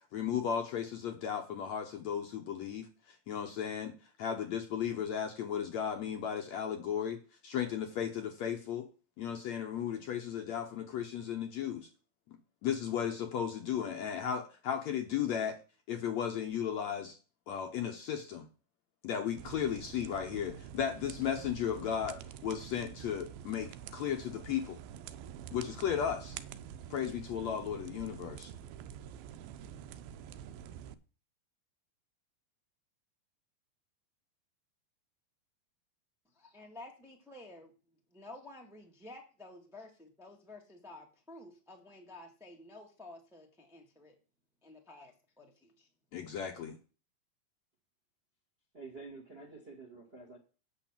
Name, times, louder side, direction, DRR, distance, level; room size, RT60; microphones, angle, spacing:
voice 1, 0.1-3.9 4.2-8.9 9.2-11.9 12.3-12.4 12.6-15.6 15.9-17.2 17.5-18.5 19.0-24.8 25.5-26.4 26.9-28.5 46.1-46.8, left 8 dB, 65° left, 5 dB, 1.8 m, -35 dB
sound 1, 19.4-30.9, right 9 dB, 85° right, 2.5 m, -47 dB
voice 2, 36.4-37.7 38.1-44.1 44.6-45.9, left 2 dB, 5° right, 1 dB, 0.5 m, -52 dB
voice 3, 48.7-50.4, right 3 dB, 30° right, 5 dB, 1.2 m, -49 dB
8.9 x 6.5 x 7.3 m, 0.36 s
omnidirectional pair, 4.1 m